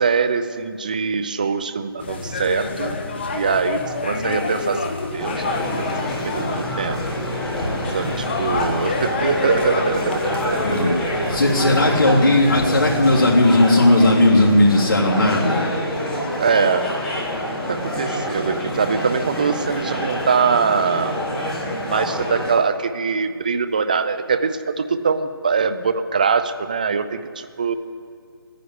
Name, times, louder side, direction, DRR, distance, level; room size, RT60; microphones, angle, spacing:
voice 1, 0.0-3.0 3.3-5.4 6.2-7.0 7.9-10.6 16.4-16.9 17.7-21.2 21.8-27.7, right 5 dB, 20° right, 11 dB, 0.4 m, -22 dB
sound 1, 2.0-13.4, left 3 dB, 25° left, 1.2 m, -28 dB
sound 2, 5.2-22.5, equal, 5° left, 1.2 m, -27 dB
voice 2, 10.6-10.9 11.3-15.7 17.9-18.1, left 1 dB, 65° left, -5 dB, 3.4 m, -16 dB
14.0 x 10.0 x 9.9 m, 2.2 s
figure-of-eight pair, 170°, 12 cm